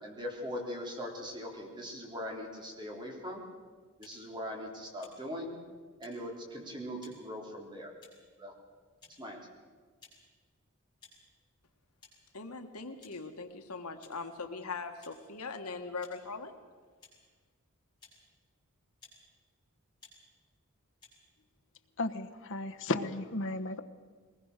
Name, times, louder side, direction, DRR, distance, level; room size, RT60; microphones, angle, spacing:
voice 1, 0.0-3.4 4.0-5.6 6.0-7.9 8.4-8.5 9.2-9.4, equal, 20° right, 0 dB, 3.5 m, -40 dB
sound 1, 4.0-4.2 5.0-5.2 6.0-6.1 7.0-7.2 8.0-8.3 9.0-9.2 10.0-10.2 11.0-11.2 12.0-12.1 13.0-13.2 14.0-14.2 15.0-15.1 16.0-16.1 17.0-17.1 18.0-18.2 19.0-19.2 20.0-20.2 21.0-21.1, left 4 dB, 20° left, 6.7 m, -56 dB
voice 2, 12.3-16.6, left 4 dB, 85° left, 6 dB, 1.7 m, -41 dB
voice 3, 22.0-23.8, left 2 dB, 60° left, 7 dB, 1.2 m, -34 dB
22.0 x 20.0 x 6.6 m, 1.5 s
head